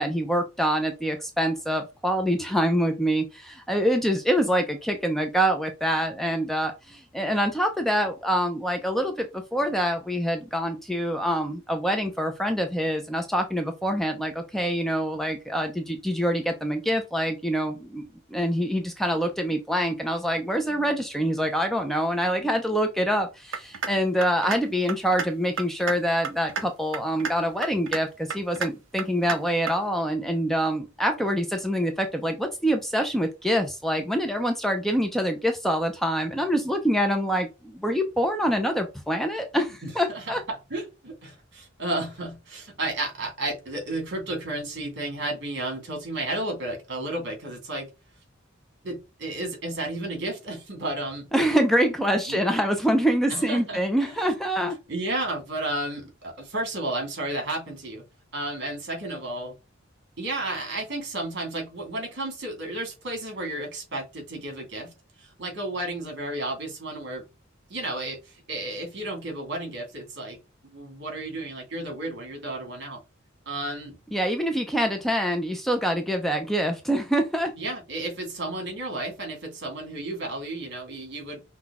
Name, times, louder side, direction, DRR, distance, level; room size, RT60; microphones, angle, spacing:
voice 1, 0.0-18.0 18.3-40.4 51.3-54.8 74.1-77.5, equal, ahead, 0.5 m, -25 dB
sound 1, 23.5-23.9 24.2-24.6 24.9-25.3 25.6-25.9 26.2-26.6 26.9-27.3 27.6-28.0 28.3-28.7 29.0-29.4 29.7-29.8, right 5 dB, 85° right, 0.8 m, -29 dB
voice 2, 39.8-47.9 48.8-51.3 52.3-52.4 53.3-54.2 54.9-58.0 58.3-59.5 60.2-64.9 65.2-67.2 67.7-70.4 70.7-73.0 73.5-74.0 77.6-81.4, right 2 dB, 60° right, 2.1 m, -32 dB
5.8 x 2.3 x 3.5 m
head